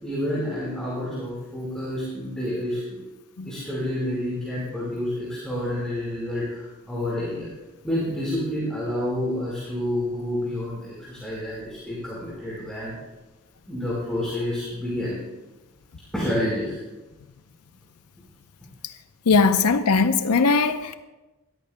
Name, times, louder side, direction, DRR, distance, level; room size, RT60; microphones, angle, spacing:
voice 1, 0.0-3.0 3.4-7.5 7.8-12.9 13.7-15.2 16.1-16.8, left 1 dB, 5° left, -8 dB, 4.4 m, -29 dB
voice 2, 19.3-20.9, left 4 dB, 85° left, 9 dB, 0.7 m, -19 dB
23.0 x 13.5 x 2.2 m, 1.1 s
head